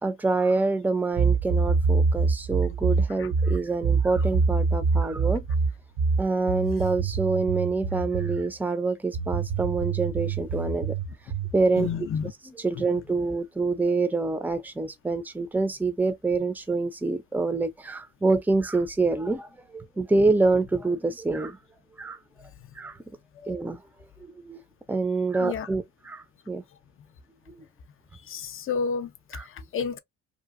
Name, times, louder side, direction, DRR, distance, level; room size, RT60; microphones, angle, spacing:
voice 1, 0.0-5.4 6.2-11.0 11.5-11.9 12.6-19.5 19.7-21.6 22.0-22.2 22.8-22.9 23.5-23.8 24.4-24.6 24.9-26.6 29.3-29.4, right 3 dB, 5° right, 0.5 m, -26 dB
sound 1, 1.2-8.5 9.1-11.6, right 4 dB, 55° right, 0.7 m, -25 dB
voice 2, 11.7-12.3 12.7-12.8 23.4-23.6 25.4-25.7 28.3-30.0, left 6 dB, 45° left, 0.6 m, -31 dB
2.8 x 2.4 x 2.5 m
cardioid pair, 90°, 30 cm